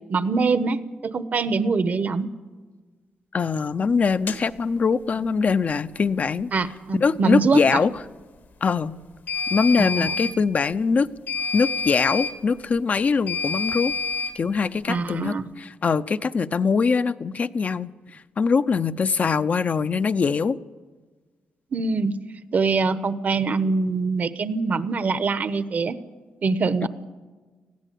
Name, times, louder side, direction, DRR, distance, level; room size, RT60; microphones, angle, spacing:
voice 1, 0.1-2.3 6.5-7.8 9.8-10.1 14.9-15.4 21.7-22.1 22.5-26.0 26.4-26.9, right 4 dB, 50° right, 13 dB, 1.0 m, -24 dB
voice 2, 3.3-6.5 7.0-7.9 8.6-9.0 9.5-11.1 11.5-13.9 14.3-17.9 18.4-20.6 26.8-26.9, left 5 dB, 45° left, 12 dB, 0.6 m, -22 dB
sound 1, 4.3-4.4 9.3-10.4 11.3-12.4 13.3-14.4, left 4 dB, 65° left, 1.4 m, -27 dB
20.0 x 15.5 x 8.5 m, 1.3 s
cardioid pair, 110°, 4 cm